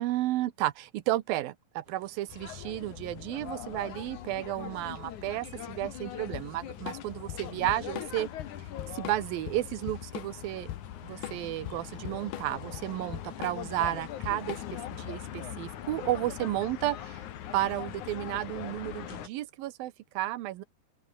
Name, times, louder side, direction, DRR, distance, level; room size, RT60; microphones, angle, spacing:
voice 1, 0.0-8.3 8.9-10.7 11.0-17.2 17.5-20.6, right 15 dB, 75° right, 2.7 m, -32 dB
sound 1, 1.8-16.4, right 3 dB, 50° right, 9.0 m, -62 dB
sound 2, 2.3-19.3, left 11 dB, 60° left, 2.6 m, -42 dB
Drum kit / Drum, 6.3-14.9, left 13 dB, 75° left, 3.1 m, -41 dB
open air
omnidirectional pair, 4.4 m